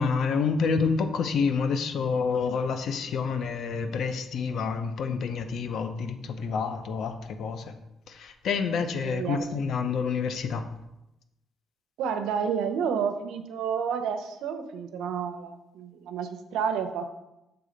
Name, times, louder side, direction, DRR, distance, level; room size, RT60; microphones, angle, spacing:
voice 1, 0.0-7.8 8.1-10.6, left 5 dB, 70° left, 8 dB, 0.7 m, -28 dB
voice 2, 9.0-9.4 12.0-17.1, right 7 dB, 85° right, 8 dB, 0.7 m, -30 dB
6.9 x 3.9 x 5.1 m, 0.91 s
cardioid pair, 90°, 0 cm